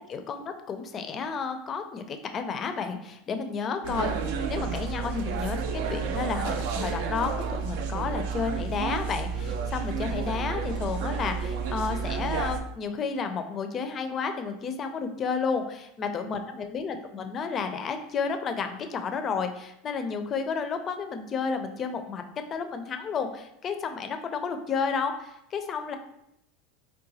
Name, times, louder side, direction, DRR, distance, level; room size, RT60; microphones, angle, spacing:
voice 1, 0.0-4.2 4.5-22.2 22.5-26.0, left 5 dB, 35° left, 7 dB, 0.4 m, -31 dB
sound 1, 3.8-12.6, right 5 dB, 70° right, 0.3 m, -31 dB
3.8 x 2.2 x 2.7 m, 0.79 s
supercardioid pair, 115°, 0 cm